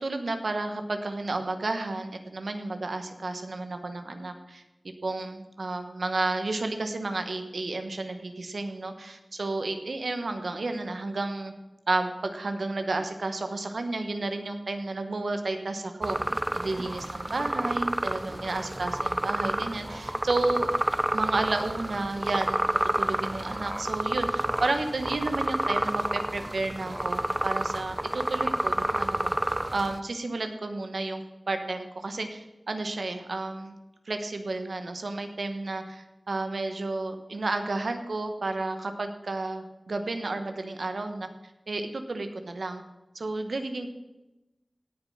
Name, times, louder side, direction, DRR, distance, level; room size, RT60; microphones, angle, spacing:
voice 1, 0.0-4.6 5.0-11.5 11.9-16.2 16.5-20.7 21.1-22.6 23.0-33.8 34.1-41.3 41.7-42.8 43.1-43.9, right 2 dB, 75° right, 7 dB, 1.2 m, -32 dB
sound 1, 16.0-30.0, right 1 dB, 20° right, 0.6 m, -29 dB
17.0 x 7.3 x 5.6 m, 1.0 s
wide cardioid pair, 55°, 0 cm